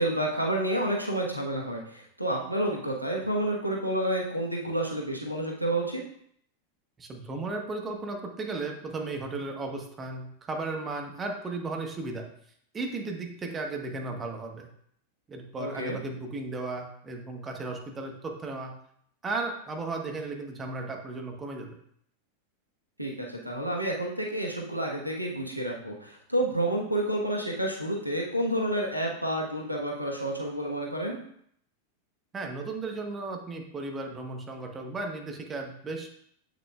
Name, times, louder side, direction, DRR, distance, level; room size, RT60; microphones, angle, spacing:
voice 1, 0.0-6.0 15.6-16.0 23.0-31.2, right 1 dB, 90° right, -1 dB, 1.2 m, -29 dB
voice 2, 7.0-12.3 12.7-14.7 15.3-18.8 19.2-21.8 32.3-36.1, right 3 dB, 20° right, 3 dB, 1.2 m, -35 dB
8.4 x 6.3 x 2.4 m, 0.67 s
figure-of-eight pair, 90°, 0 cm